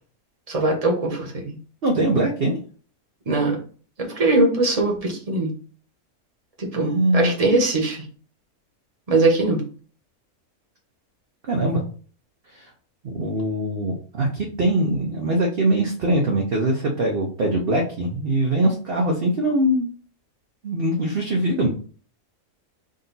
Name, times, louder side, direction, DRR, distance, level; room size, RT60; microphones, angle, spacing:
voice 1, 0.5-1.6 3.3-3.6 4.0-5.5 6.6-8.1 9.1-9.6, right 2 dB, 30° right, 0 dB, 1.1 m, -21 dB
voice 2, 1.8-2.6 6.8-7.3 11.5-11.8 12.6-12.7 13.1-19.9 20.6-21.7, right 1 dB, 50° right, 0 dB, 0.8 m, -22 dB
3.9 x 2.7 x 3.9 m, 0.41 s
omnidirectional pair, 1.5 m